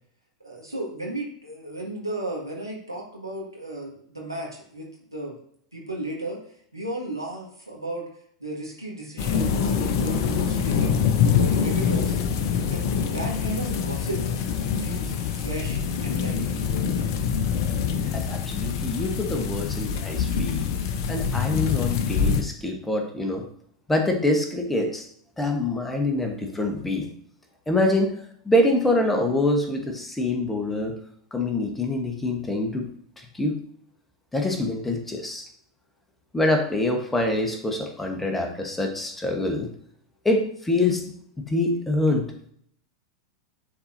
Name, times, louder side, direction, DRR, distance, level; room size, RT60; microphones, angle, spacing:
voice 1, 0.4-5.3 5.7-6.4 6.7-8.1 8.4-11.1 11.3-12.1 12.7-14.2 14.8-16.6, right 1 dB, 90° right, -3 dB, 1.8 m, -34 dB
sound 1, 9.2-22.4, left 7 dB, 50° left, 0.7 m, -25 dB
voice 2, 18.1-20.6 21.1-23.5 23.9-25.0 25.4-27.1 27.7-28.1 28.4-31.0 31.3-32.9 33.2-33.6 34.3-35.4 36.3-39.7 40.2-42.3, left 2 dB, 10° left, 3 dB, 1.1 m, -25 dB
9.6 x 4.1 x 2.7 m, 0.65 s
figure-of-eight pair, 90°, 2 cm